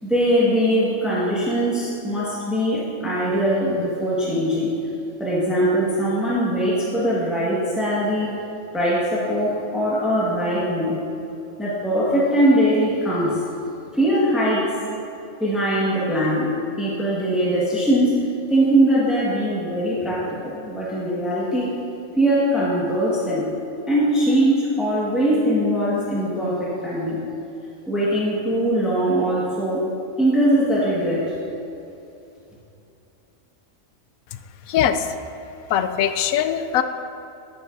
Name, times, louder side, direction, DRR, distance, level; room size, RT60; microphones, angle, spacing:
voice 1, 0.0-4.7 5.2-8.3 8.7-11.0 11.6-13.4 13.9-14.7 15.4-16.5 16.8-18.1 18.5-21.7 22.2-23.5 23.9-27.2 27.9-29.8 30.2-31.3, right 1 dB, ahead, -8 dB, 1.5 m, -21 dB
voice 2, 34.7-35.1 35.7-36.8, left 9 dB, 80° left, 9 dB, 1.0 m, -21 dB
11.0 x 9.8 x 2.7 m, 2.8 s
omnidirectional pair, 1.5 m